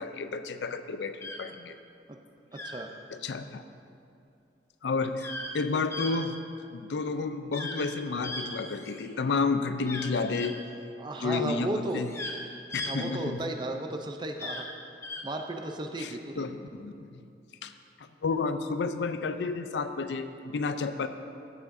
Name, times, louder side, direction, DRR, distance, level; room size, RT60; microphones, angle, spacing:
voice 1, 0.0-1.8 3.1-3.6 4.8-6.4 6.7-10.6 11.2-12.1 12.7-13.5 16.0-17.3 17.6-17.7 18.0-21.1, left 4 dB, 80° left, 10 dB, 0.4 m, -31 dB
sound 1, 1.2-1.4 2.5-2.8 5.2-5.5 5.9-6.1 7.5-7.8 8.2-9.1 9.9-10.5 11.8-12.4 12.7-12.9 14.4-14.6 15.0-15.2, left 2 dB, 15° left, 0.6 m, -37 dB
voice 2, 2.5-2.9 11.0-12.0 12.9-14.7 15.2-16.5, right 2 dB, 25° right, 4 dB, 0.5 m, -34 dB
13.5 x 7.1 x 2.6 m, 2.6 s
head